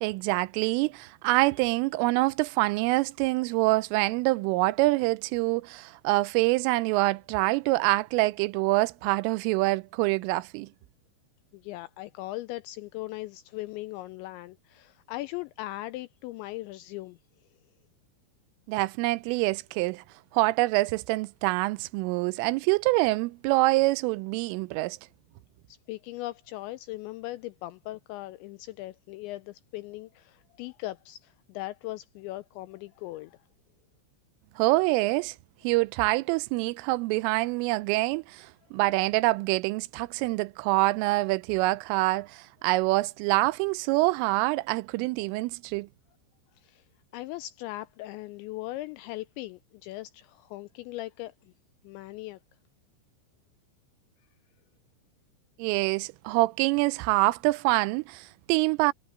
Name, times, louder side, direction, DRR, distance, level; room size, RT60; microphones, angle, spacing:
voice 1, 0.0-10.7 18.7-20.0 20.3-25.0 34.6-35.4 35.6-45.9 55.6-58.9, right 21 dB, 85° right, 3.2 m, -25 dB
voice 2, 11.5-17.2 25.7-33.4 46.6-46.9 47.1-51.5 51.8-52.4, left 17 dB, 85° left, 2.6 m, -39 dB
omnidirectional pair, 5.7 m